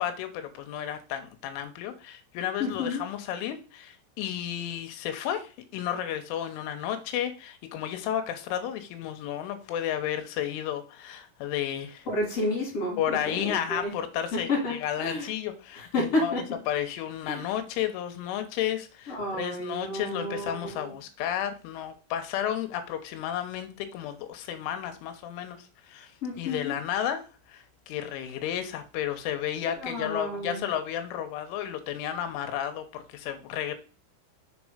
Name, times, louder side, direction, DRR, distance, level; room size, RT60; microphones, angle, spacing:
voice 1, 0.0-12.1 13.0-16.3 16.7-26.1 26.4-33.8, left 10 dB, 80° left, 8 dB, 3.2 m, -32 dB
voice 2, 2.6-3.0 12.0-13.9 14.3-15.3 15.7-16.4 17.2-17.5 19.1-21.0 26.2-26.7 29.8-30.6, left 2 dB, 35° left, -3 dB, 3.2 m, -31 dB
6.9 x 4.2 x 4.9 m, 0.35 s
omnidirectional pair, 5.9 m